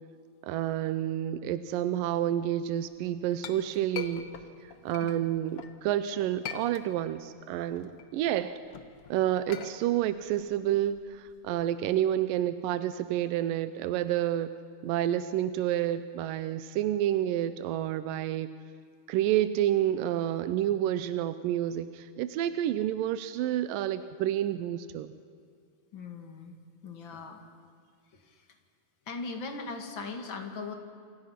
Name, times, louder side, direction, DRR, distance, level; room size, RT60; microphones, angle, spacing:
voice 1, 0.4-4.3 4.6-8.6 9.1-14.6 14.8-18.5 19.1-25.1, right 12 dB, 80° right, 11 dB, 2.1 m, -29 dB
Chink clink, 2.9-5.8 6.2-7.2 7.6-11.7, left 7 dB, 75° left, 1.3 m, -43 dB
voice 2, 25.9-26.6 26.8-27.4 28.1-28.5 29.1-30.7, left 4 dB, 40° left, 4 dB, 2.1 m, -39 dB
28.0 x 26.5 x 5.8 m, 2.2 s
omnidirectional pair, 4.6 m